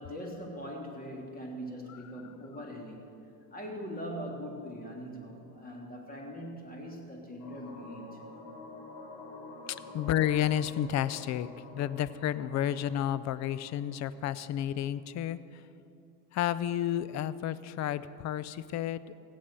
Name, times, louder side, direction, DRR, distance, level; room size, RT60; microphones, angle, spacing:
voice 1, 0.0-3.1 3.5-8.2 9.8-10.2, equal, 15° left, 0 dB, 3.2 m, -41 dB
sound 1, 7.4-15.0, left 2 dB, 65° left, 2.5 m, -49 dB
voice 2, 9.9-11.5 11.7-15.6 16.3-19.2, left 11 dB, 35° left, 16 dB, 0.5 m, -31 dB
16.5 x 8.5 x 7.6 m, 2.6 s
hypercardioid pair, 100°, 49 cm